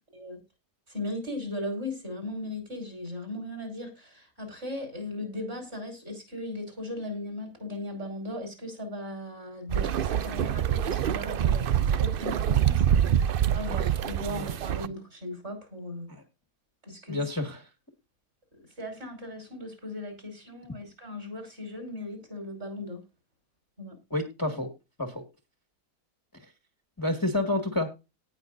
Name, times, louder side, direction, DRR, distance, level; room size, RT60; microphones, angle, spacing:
voice 1, 0.9-13.3 13.5-16.1 16.8-17.2 18.8-23.0 23.8-24.0, left 1 dB, 40° right, 5.6 m, -37 dB
Paddle bridge, 9.7-14.9, right 9 dB, 65° right, 0.5 m, -25 dB
voice 2, 17.1-17.6 24.1-24.7 25.0-25.2 27.0-27.9, left 2 dB, 15° left, 1.8 m, -29 dB
18.5 x 6.2 x 2.6 m
omnidirectional pair, 1.6 m